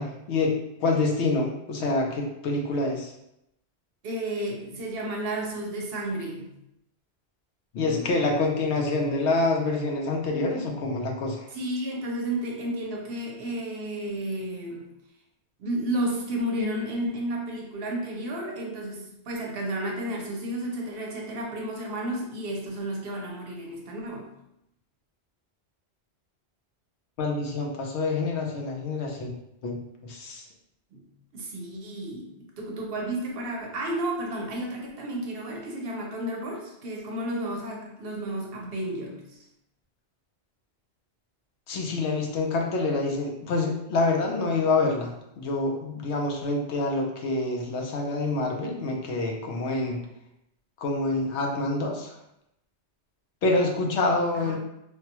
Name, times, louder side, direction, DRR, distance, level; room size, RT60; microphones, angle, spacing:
voice 1, 0.0-3.1 7.7-11.5 27.2-29.3 29.6-30.4 41.7-50.1 50.8-52.2 53.4-54.6, left 3 dB, 80° left, 0 dB, 0.9 m, -27 dB
voice 2, 4.0-6.6 11.5-14.9 15.6-24.3 30.9-31.1 31.3-39.4 54.4-54.6, right 1 dB, 65° right, 0 dB, 0.8 m, -32 dB
3.2 x 2.2 x 2.8 m, 0.82 s
omnidirectional pair, 1.1 m